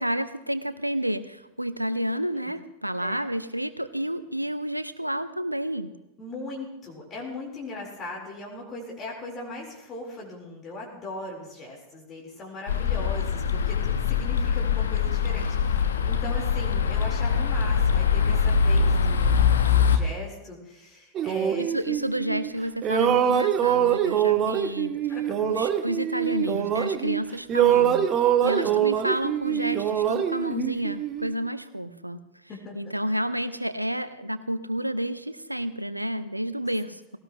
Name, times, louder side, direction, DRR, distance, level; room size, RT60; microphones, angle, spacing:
voice 1, 0.0-5.9 21.6-24.9 25.4-32.2 32.7-37.2, equal, 90° right, 14 dB, 0.8 m, -30 dB
voice 2, 6.2-19.4 19.7-21.6 25.1-25.5 28.4-28.8 32.5-32.9, left 2 dB, 25° left, -2 dB, 4.1 m, -39 dB
sound 1, 12.7-20.0, left 6 dB, 65° left, 1.2 m, -23 dB
sound 2, 21.1-22.5 22.8-27.2 27.5-31.3, right 9 dB, 30° right, 1.1 m, -24 dB
18.5 x 18.0 x 3.1 m, 0.97 s
figure-of-eight pair, 90°, 0 cm